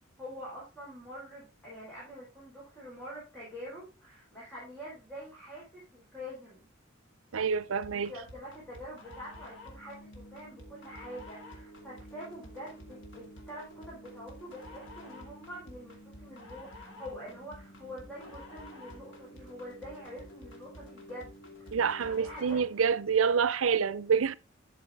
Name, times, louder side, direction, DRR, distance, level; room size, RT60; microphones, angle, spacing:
voice 1, 0.2-6.7 7.9-21.3 22.1-22.6, equal, 5° left, 4.3 m, -45 dB
voice 2, 7.3-8.1 21.7-24.3, right 6 dB, 85° right, 0.5 m, -27 dB
sound 1, 7.8-22.8, left 1 dB, 65° left, 2.5 m, -49 dB
11.5 x 6.6 x 3.6 m
head